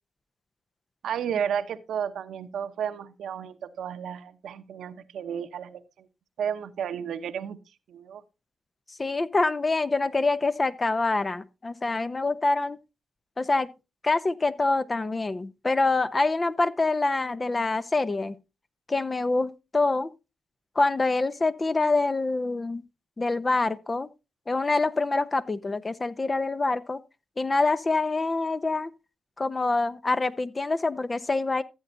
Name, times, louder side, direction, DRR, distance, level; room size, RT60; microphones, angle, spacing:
voice 1, 1.0-6.1 6.4-7.6 7.9-8.2, right 8 dB, 75° right, 0.8 m, -32 dB
voice 2, 9.0-12.8 13.4-13.7 14.0-18.4 18.9-20.1 20.7-22.8 23.2-24.1 24.5-27.0 27.4-28.9 29.4-31.6, left 3 dB, 35° left, 0.8 m, -25 dB
14.5 x 8.0 x 2.6 m
hypercardioid pair, 40°, 0 cm